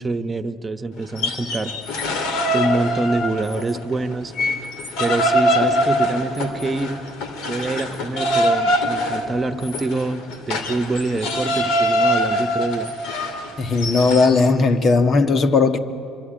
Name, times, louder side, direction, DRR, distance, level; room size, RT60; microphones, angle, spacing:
voice 1, 0.0-1.7 2.5-4.3 5.0-7.0 7.5-12.9, right 2 dB, 25° right, 1.3 m, -25 dB
sound 1, 1.0-3.8 4.1-14.4, equal, 75° left, 2.9 m, -23 dB
voice 2, 13.6-15.8, left 4 dB, 50° left, 1.6 m, -17 dB
24.5 x 24.5 x 9.1 m
hypercardioid pair, 70°, 0 cm